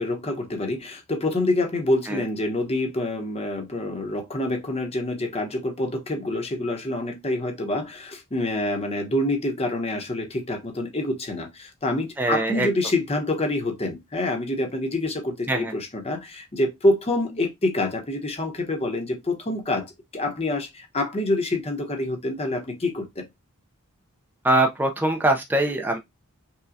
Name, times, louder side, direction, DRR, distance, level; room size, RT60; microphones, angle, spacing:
voice 1, 0.0-23.3, left 1 dB, 25° left, 0.9 m, -26 dB
voice 2, 12.2-12.7 15.5-15.7 24.4-26.0, right 1 dB, 10° right, 0.4 m, -22 dB
5.6 x 2.3 x 2.6 m
head